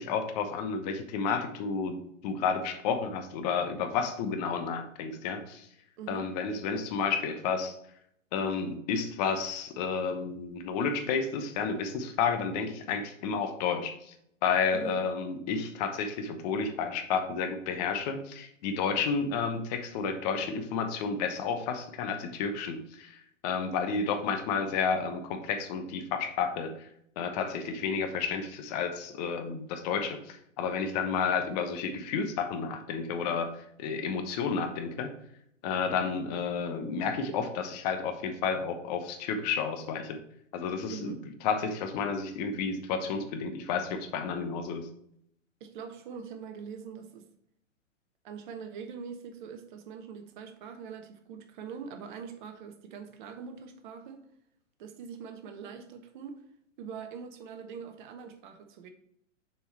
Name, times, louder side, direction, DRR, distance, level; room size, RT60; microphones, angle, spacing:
voice 1, 0.0-5.7 6.1-7.8 8.3-14.1 14.4-26.9 27.2-33.5 33.8-35.1 35.6-40.2 40.5-41.1 41.4-44.9, left 5 dB, 30° left, 6 dB, 1.0 m, -31 dB
voice 2, 6.0-6.3 14.7-15.0 40.9-41.2 45.6-47.3 48.2-54.2 54.8-56.4 56.8-58.9, right 6 dB, 40° right, 7 dB, 1.1 m, -43 dB
6.8 x 4.5 x 4.3 m, 0.72 s
figure-of-eight pair, 115°, 39 cm